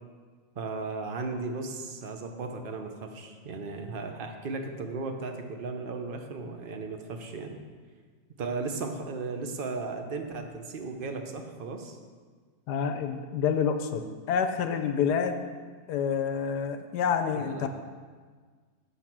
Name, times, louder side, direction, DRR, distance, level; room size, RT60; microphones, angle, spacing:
voice 1, 0.5-7.6 8.4-12.0 17.2-17.7, right 3 dB, 45° right, 5 dB, 0.7 m, -36 dB
voice 2, 12.7-15.5 15.9-17.7, left 7 dB, 70° left, 8 dB, 1.2 m, -28 dB
8.6 x 7.3 x 6.0 m, 1.6 s
omnidirectional pair, 2.0 m